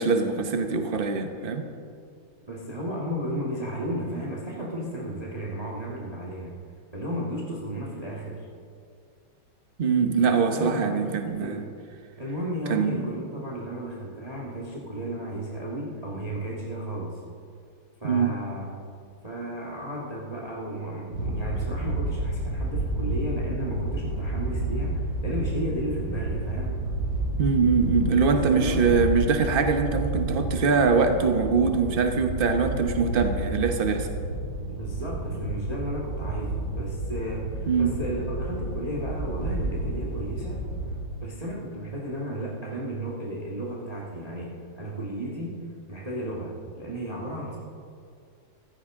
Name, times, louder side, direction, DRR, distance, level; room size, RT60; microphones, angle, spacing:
voice 1, 0.0-1.6 9.8-11.6 12.7-13.1 18.0-18.3 27.4-34.1 37.7-37.9, right 5 dB, 45° right, 6 dB, 0.7 m, -23 dB
voice 2, 2.5-6.5 6.9-8.5 10.2-11.7 12.2-17.2 18.0-18.7 19.2-26.8 28.2-29.0 34.7-40.6 41.2-45.6 45.9-47.6, equal, 20° right, -4 dB, 1.6 m, -34 dB
sound 1, 21.1-41.0, right 2 dB, 85° right, 4.4 m, -30 dB
15.0 x 14.5 x 3.7 m, 2.3 s
omnidirectional pair, 2.3 m